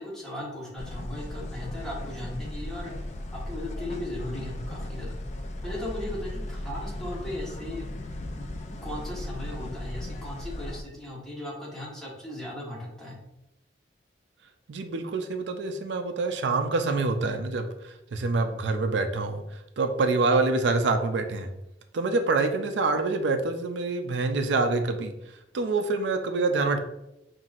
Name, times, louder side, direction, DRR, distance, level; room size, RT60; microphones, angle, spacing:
voice 1, 0.0-2.9 3.3-5.2 5.6-7.9 8.4-8.5 8.8-13.2, left 1 dB, 5° left, -6 dB, 1.1 m, -37 dB
sound 1, 0.8-10.8, left 1 dB, 40° left, 0.4 m, -36 dB
voice 2, 14.7-21.5 21.9-25.1 25.5-26.8, right 3 dB, 85° right, 6 dB, 0.4 m, -26 dB
5.6 x 2.6 x 2.4 m, 0.85 s
head